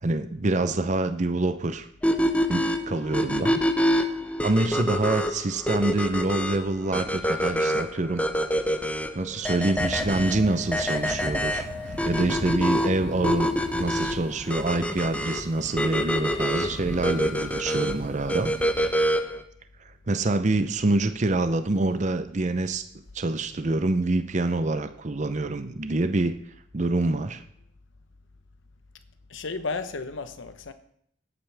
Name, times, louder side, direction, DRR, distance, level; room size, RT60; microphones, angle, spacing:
voice 1, 0.0-1.9 2.5-3.5 4.4-8.2 9.1-11.7 12.0-18.5 19.8-22.8 23.1-26.3 26.7-27.4, right 2 dB, 40° right, 0.6 m, -26 dB
sound 1, 2.0-19.4, equal, 5° left, 0.7 m, -26 dB
sound 2, 9.8-18.9, equal, 65° right, 2.3 m, -39 dB
voice 2, 29.3-30.7, left 4 dB, 80° left, 1.0 m, -34 dB
17.5 x 8.9 x 3.4 m
head